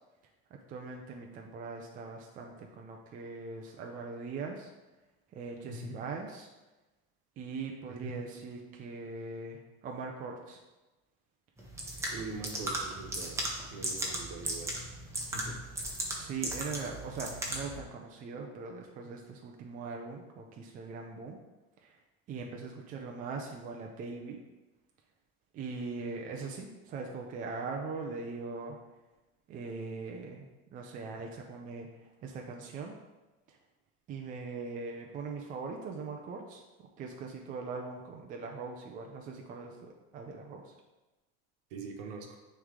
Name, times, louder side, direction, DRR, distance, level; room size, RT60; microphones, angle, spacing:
voice 1, 0.5-4.7 5.3-6.5 7.4-10.6 16.2-21.4 21.8-22.0 22.3-24.4 25.5-28.8 29.5-33.0 33.5-33.6 34.1-40.7, right 4 dB, 25° right, 1 dB, 0.5 m, -41 dB
voice 2, 5.7-6.1 7.9-8.1 12.1-13.4 13.7-14.8 15.3-15.6 41.7-42.4, right 3 dB, 65° right, 2 dB, 1.2 m, -43 dB
sound 1, 11.6-17.8, right 1 dB, 10° right, 1.0 m, -37 dB
9.6 x 3.3 x 3.7 m, 1.1 s
cardioid pair, 155°, 30 cm